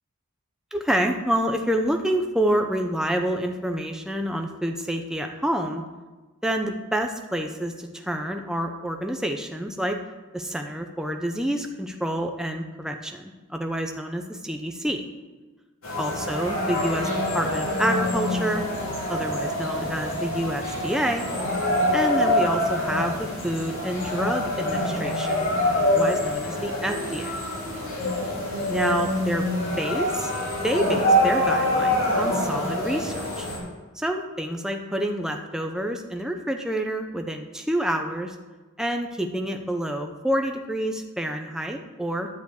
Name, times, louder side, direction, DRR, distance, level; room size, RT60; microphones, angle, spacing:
voice 1, 0.7-5.8 6.4-10.0 10.3-15.0 15.9-18.6 19.1-21.3 21.9-25.5 25.7-27.4 28.7-29.5 29.8-30.3 30.6-33.5 34.0-38.3 38.8-42.3, right 1 dB, 5° right, 4 dB, 0.6 m, -28 dB
sound 1, 15.8-33.6, left 1 dB, 65° left, 3.9 m, -25 dB
10.5 x 5.0 x 8.1 m, 1.3 s
head